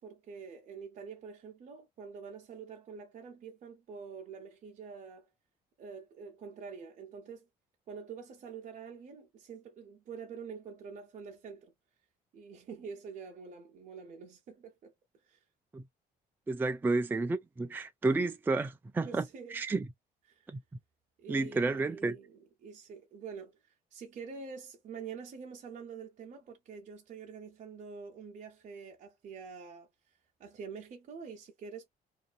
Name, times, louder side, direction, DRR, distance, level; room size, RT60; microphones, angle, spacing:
voice 1, 0.0-5.3 5.8-7.5 7.9-11.7 12.3-15.4 19.0-19.6 20.3-20.5 21.2-31.9, right 6 dB, 50° right, 0.7 m, -46 dB
voice 2, 16.5-19.2 19.5-19.9 20.5-20.6 21.3-22.2, right 3 dB, 10° right, 0.4 m, -31 dB
2.6 x 2.5 x 2.4 m
cardioid pair, 110°, 17 cm